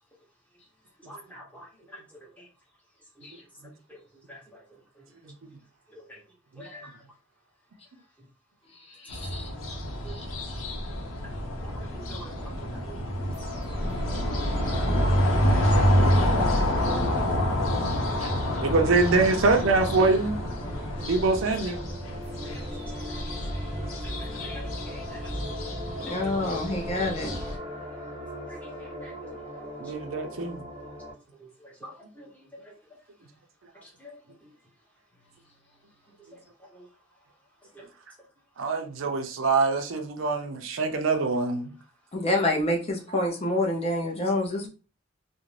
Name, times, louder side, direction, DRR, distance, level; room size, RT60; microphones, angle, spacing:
voice 1, 1.1-1.7 3.2-3.3 4.3-4.4 5.9-6.0 6.6-6.9 11.6-12.9 14.3-14.4 15.5-15.9 17.0-17.1 17.5-17.6 22.4-22.6 24.4-25.2 28.5-29.1 29.5-29.7 31.8-31.9 32.2-32.3 34.0-34.1 37.8-37.9 41.5-41.7, equal, 5° left, 0.9 m, -46 dB
voice 2, 5.2-5.6 6.5-6.9 12.8-12.9 13.3-13.4 18.2-18.3 18.6-20.4 21.0-21.9 29.8-30.7 38.6-41.7, right 3 dB, 70° right, 0.5 m, -25 dB
voice 3, 8.7-9.5 10.0-10.3 26.0-27.4 42.1-44.7, left 1 dB, 30° left, 0.5 m, -28 dB
sound 1, 9.1-27.6, equal, 85° left, 0.7 m, -28 dB
sound 2, 13.3-31.1, left 1 dB, 30° right, 0.7 m, -40 dB
2.5 x 2.1 x 3.1 m
head